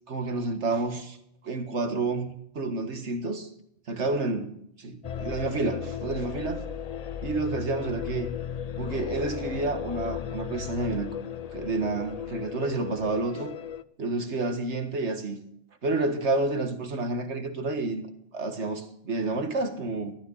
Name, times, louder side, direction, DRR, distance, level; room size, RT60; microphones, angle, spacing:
voice 1, 0.1-1.2 1.4-3.5 3.9-4.5 4.8-6.6 7.2-8.3 8.8-11.2 11.5-13.5 14.0-15.4 15.8-18.0 18.3-20.2, right 3 dB, 75° right, 6 dB, 1.9 m, -29 dB
sound 1, 5.0-13.8, left 8 dB, 50° left, 0.5 m, -36 dB
15.5 x 13.0 x 4.0 m, 0.72 s
omnidirectional pair, 1.2 m